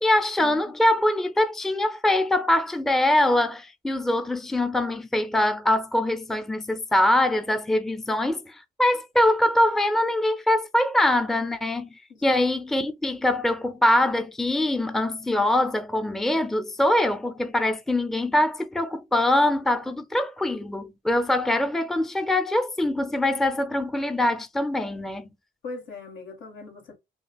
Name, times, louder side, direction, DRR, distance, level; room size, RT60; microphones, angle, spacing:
voice 1, 0.0-25.3, left 1 dB, ahead, 0.4 m, -23 dB
voice 2, 12.1-12.4 25.6-27.0, left 4 dB, 80° left, 1.7 m, -39 dB
5.1 x 2.3 x 2.2 m
cardioid pair, 90°, 20 cm